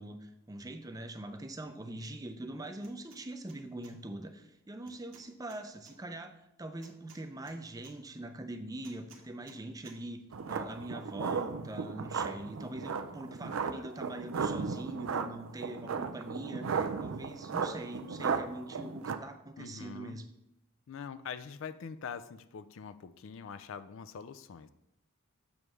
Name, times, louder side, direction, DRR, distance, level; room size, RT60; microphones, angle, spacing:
voice 1, 0.0-6.3 6.6-20.3, right 1 dB, 15° right, 7 dB, 0.5 m, -43 dB
sound 1, 2.8-3.2 3.5-3.9 4.8-5.9 6.8-7.9 8.8-9.6 9.8-10.0, right 4 dB, 65° right, 1.3 m, -57 dB
sound 2, 10.3-19.2, right 5 dB, 80° right, 0.5 m, -35 dB
voice 2, 19.6-20.2 20.9-24.7, left 6 dB, 65° left, 13 dB, 0.4 m, -44 dB
7.1 x 3.3 x 6.0 m, 0.82 s
head